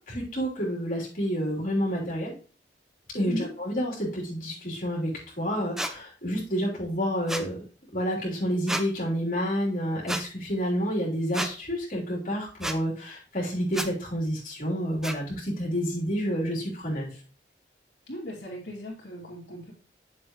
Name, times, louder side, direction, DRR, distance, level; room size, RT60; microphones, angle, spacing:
voice 1, 0.0-2.3 3.1-7.6 7.9-17.1, equal, 50° left, -5 dB, 3.3 m, -29 dB
sound 1, 5.8-5.9 7.3-7.5 8.7-8.9 10.1-10.2 11.3-11.5 12.6-12.8 13.7-13.9 15.0-15.2, right 1 dB, 5° right, 0.5 m, -30 dB
voice 2, 18.1-19.7, equal, 80° left, -4 dB, 2.9 m, -36 dB
8.1 x 7.0 x 3.1 m, 0.36 s
head